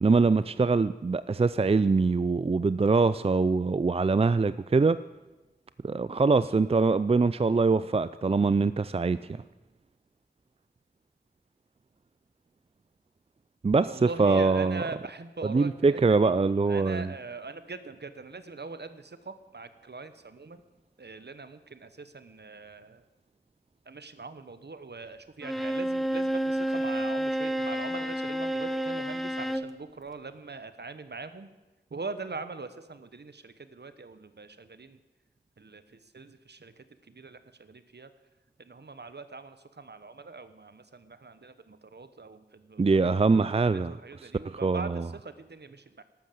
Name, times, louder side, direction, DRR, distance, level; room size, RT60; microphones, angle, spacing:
voice 1, 0.0-5.0 5.8-9.4 13.6-14.8 15.4-17.1 42.8-43.9 44.4-45.0, right 4 dB, 35° right, 15 dB, 0.4 m, -23 dB
voice 2, 13.9-16.3 16.7-20.6 21.0-23.0 23.9-31.5 31.9-35.0 35.6-38.1 38.6-46.0, right 3 dB, 65° right, 11 dB, 1.1 m, -42 dB
Bowed string instrument, 25.4-29.7, right 1 dB, ahead, 0.8 m, -30 dB
13.0 x 12.0 x 7.8 m, 1.1 s
wide cardioid pair, 60°, 19 cm